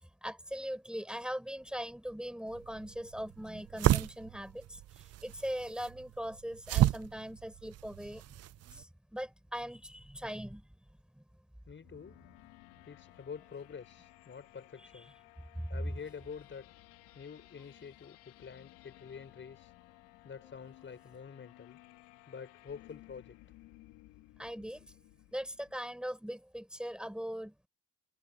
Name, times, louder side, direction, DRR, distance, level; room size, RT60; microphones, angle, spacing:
voice 1, 0.0-8.2 8.7-10.7 11.1-11.2 15.6-15.8 24.4-24.8 25.3-27.7, equal, 5° right, 5.8 m, -40 dB
sound 1, 2.5-8.8, right 13 dB, 55° right, 0.6 m, -33 dB
voice 2, 11.7-12.2 12.9-15.1 15.7-16.7 17.1-19.7 20.2-21.8 22.3-23.4, left 6 dB, 40° left, 6.3 m, -47 dB
sound 2, 11.8-25.8, left 19 dB, 90° left, 3.9 m, -58 dB
cardioid pair, 85°, 31 cm